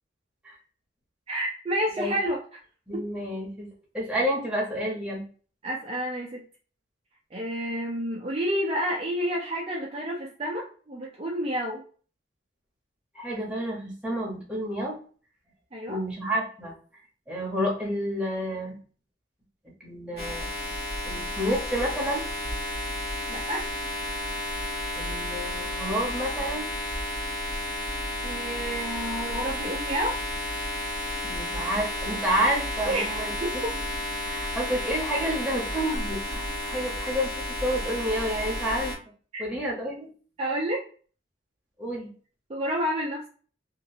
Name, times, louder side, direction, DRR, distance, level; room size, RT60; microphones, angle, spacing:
voice 1, 1.3-2.4 2.9-3.0 5.6-6.4 7.3-11.8 15.7-16.0 23.3-23.6 28.2-30.2 32.9-33.1 33.4-33.7 39.3-39.4 40.4-40.8 42.5-43.3, equal, 30° right, -3 dB, 0.5 m, -29 dB
voice 2, 2.9-3.7 3.9-5.2 13.1-15.0 15.9-16.8 17.3-18.8 19.8-20.5 21.1-22.2 25.0-26.7 31.2-33.3 34.2-38.9 39.4-40.1 41.8-42.1, equal, 5° right, -4 dB, 0.9 m, -29 dB
sound 1, 20.2-39.0, left 1 dB, 60° left, 1.2 m, -32 dB
2.9 x 2.6 x 2.7 m, 0.41 s
head